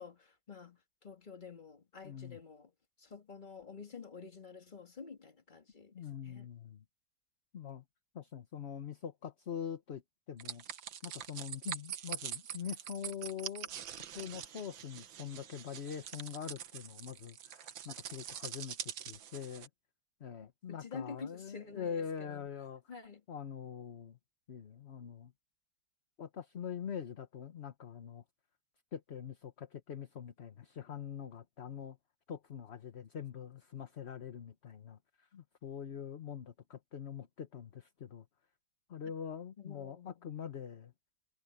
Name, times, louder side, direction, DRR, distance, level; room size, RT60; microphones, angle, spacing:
voice 1, 0.0-2.7 3.0-5.9 6.2-6.5 20.7-22.5 22.9-23.2 39.6-40.2, left 5 dB, 25° left, 1.9 m, -49 dB
voice 2, 2.0-2.4 5.9-6.8 7.5-7.8 8.1-10.0 10.3-10.6 11.0-13.7 14.1-19.7 20.2-22.8 23.3-24.2 24.5-25.3 26.2-28.2 28.9-32.0 32.3-38.3 38.9-40.9, left 8 dB, 40° left, 1.2 m, -44 dB
sound 1, 10.4-19.7, right 10 dB, 90° right, 1.8 m, -44 dB
omnidirectional pair, 2.0 m